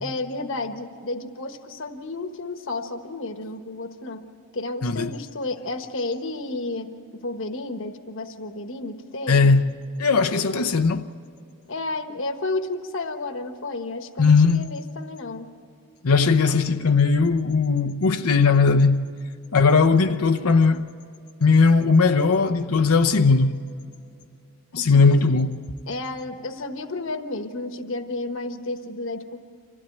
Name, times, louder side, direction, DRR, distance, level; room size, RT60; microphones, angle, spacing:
voice 1, 0.0-4.2 4.5-9.5 11.7-15.5 24.8-25.1 25.9-29.4, left 2 dB, 60° left, 1.3 m, -32 dB
voice 2, 4.8-5.2 9.3-11.1 14.2-14.7 16.0-19.1 19.5-20.9 21.4-23.6 24.7-25.6, left 4 dB, 85° left, 0.8 m, -18 dB
26.0 x 16.0 x 9.3 m
head